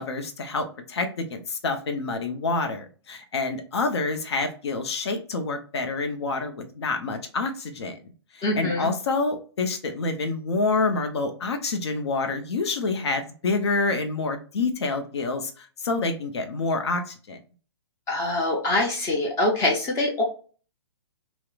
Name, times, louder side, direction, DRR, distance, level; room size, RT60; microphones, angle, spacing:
voice 1, 0.0-8.0 8.3-17.4, left 3 dB, 70° left, 6 dB, 0.6 m, -27 dB
voice 2, 8.4-8.9 18.1-20.2, left 2 dB, 20° left, 0 dB, 0.5 m, -24 dB
2.9 x 2.0 x 2.2 m, 0.38 s
hypercardioid pair, 130°, 15 cm